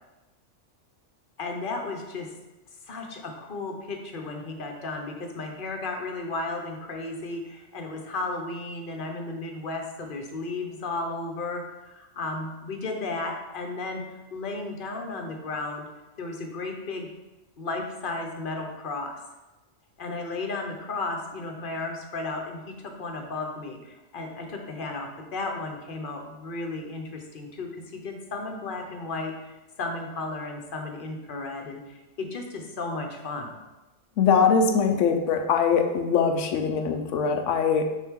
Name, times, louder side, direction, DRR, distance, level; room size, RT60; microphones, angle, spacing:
voice 1, 1.4-2.3 2.9-14.0 14.3-15.9 16.2-17.1 17.6-19.2 20.0-33.5, left 3 dB, 50° left, 3 dB, 1.0 m, -34 dB
voice 2, 34.2-37.8, left 6 dB, 80° left, 6 dB, 1.0 m, -22 dB
6.3 x 4.5 x 3.6 m, 1.1 s
omnidirectional pair, 1.3 m